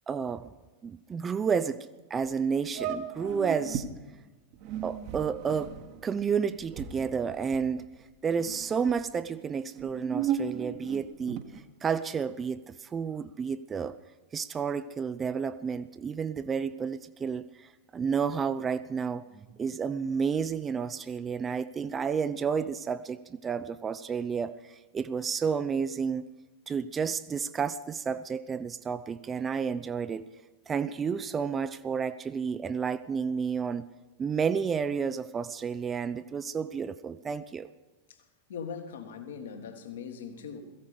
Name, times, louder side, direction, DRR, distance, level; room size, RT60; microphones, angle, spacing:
voice 1, 0.1-0.5 0.8-3.9 4.8-5.8 6.0-7.8 8.2-11.4 11.8-14.0 14.3-26.2 26.7-30.2 30.7-33.9 34.2-37.7, right 6 dB, 20° right, 14 dB, 0.5 m, -31 dB
sound 1, 2.2-2.3 2.7-3.9 4.5-8.0 8.3-9.0 9.6-11.6, right 8 dB, 45° right, 1.4 m, -36 dB
voice 2, 38.5-40.6, left 6 dB, 60° left, 6 dB, 1.8 m, -40 dB
17.0 x 15.5 x 5.2 m, 1.2 s
figure-of-eight pair, 90°, 0 cm